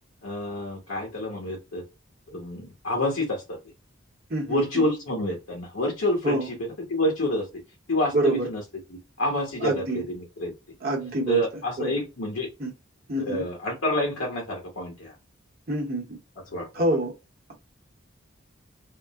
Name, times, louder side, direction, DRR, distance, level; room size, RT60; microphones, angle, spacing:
voice 1, 0.2-1.8 2.3-3.6 4.5-6.4 6.9-7.5 7.9-8.6 8.9-10.5 11.3-12.5 13.3-15.2 16.5-16.7, left 1 dB, 85° left, 1.0 m, -28 dB
voice 2, 4.3-4.9 6.2-6.5 8.1-8.5 9.6-10.0 10.8-11.4 11.8-12.0 12.6-12.7 13.1-13.4 15.7-16.2 16.7-17.1, right 1 dB, 45° right, 0.9 m, -26 dB
3.6 x 2.0 x 2.4 m
head